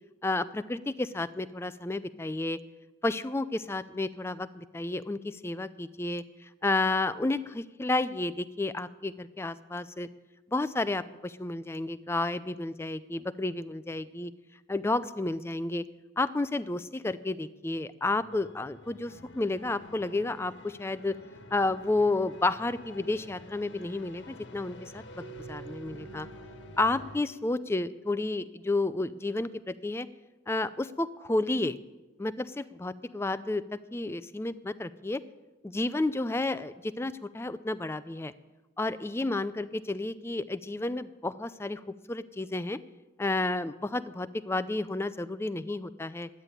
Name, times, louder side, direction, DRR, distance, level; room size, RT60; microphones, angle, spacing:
voice 1, 0.2-2.6 3.0-6.2 6.6-10.1 10.5-14.3 14.7-15.8 16.2-21.1 21.5-26.3 26.8-30.1 30.5-31.8 32.2-33.6 33.9-35.2 35.6-38.3 38.8-41.8 42.1-42.8 43.2-46.3, left 2 dB, 15° left, 14 dB, 0.4 m, -31 dB
sound 1, 18.1-27.2, left 1 dB, 70° left, 1.3 m, -49 dB
Keyboard (musical), 25.2-28.0, right 9 dB, 65° right, 1.8 m, -49 dB
12.0 x 9.6 x 9.0 m, 1.1 s
head